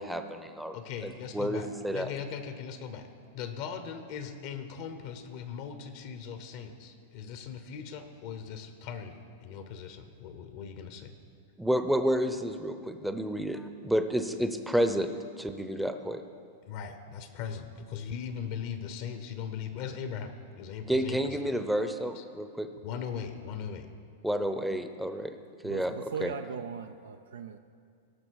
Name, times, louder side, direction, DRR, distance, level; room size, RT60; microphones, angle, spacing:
voice 1, 0.0-0.8 1.0-2.1 11.6-16.2 20.9-22.7 24.2-25.4 25.6-25.9 26.2-26.3, equal, ahead, 8 dB, 0.7 m, -30 dB
voice 2, 0.7-3.1 3.3-11.1 16.6-21.4 22.1-22.2 22.8-23.9, left 7 dB, 55° left, 8 dB, 0.9 m, -39 dB
voice 3, 25.6-27.6, right 7 dB, 80° right, 7 dB, 0.5 m, -38 dB
17.5 x 6.2 x 4.7 m, 2.3 s
hypercardioid pair, 105°, 0 cm